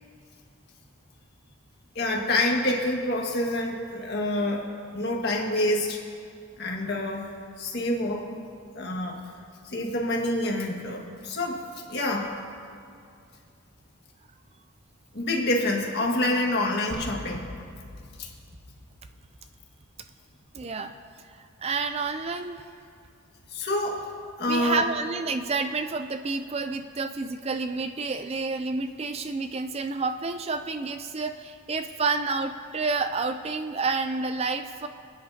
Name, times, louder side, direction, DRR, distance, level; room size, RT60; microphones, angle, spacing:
voice 1, 2.0-4.6 4.9-6.0 6.6-7.2 7.6-8.4 8.8-9.2 9.6-11.6 11.9-12.3 15.1-17.5 18.2-18.3 23.5-24.0 24.4-24.8, left 1 dB, 50° left, -1 dB, 1.8 m, -27 dB
sound 1, 16.9-19.8, left 1 dB, 75° left, 0.9 m, -43 dB
voice 2, 20.5-20.9 21.3-22.6 24.5-34.9, right 4 dB, 30° right, 8 dB, 0.3 m, -29 dB
27.0 x 9.8 x 2.8 m, 2.4 s
head